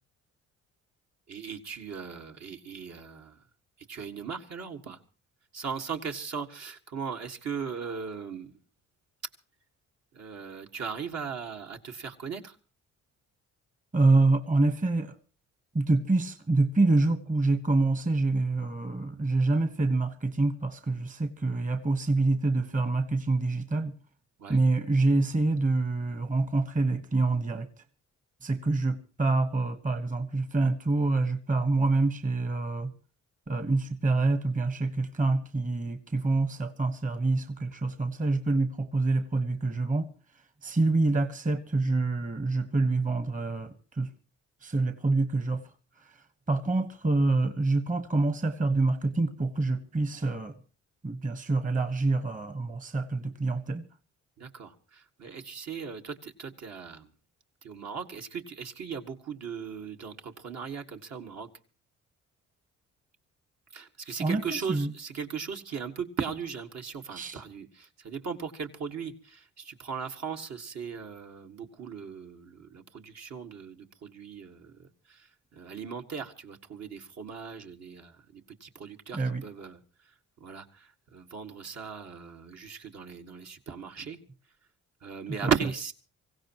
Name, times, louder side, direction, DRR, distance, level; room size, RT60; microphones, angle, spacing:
voice 1, 1.3-3.4 3.9-5.0 5.5-8.6 10.1-12.6 24.4-24.6 54.4-57.1 57.6-61.5 63.7-79.8 80.4-84.2 85.0-85.9, right 6 dB, 60° right, 1.9 m, -38 dB
voice 2, 13.9-15.1 15.7-23.9 24.5-27.7 28.4-32.9 33.5-40.1 40.6-44.1 44.6-45.6 46.5-50.5 51.0-53.9 64.2-64.4 64.7-64.9 67.1-67.4 79.1-79.4 85.4-85.5, right 3 dB, 25° right, 1.3 m, -26 dB
24.5 x 16.0 x 3.0 m
cardioid pair, 90°, 30 cm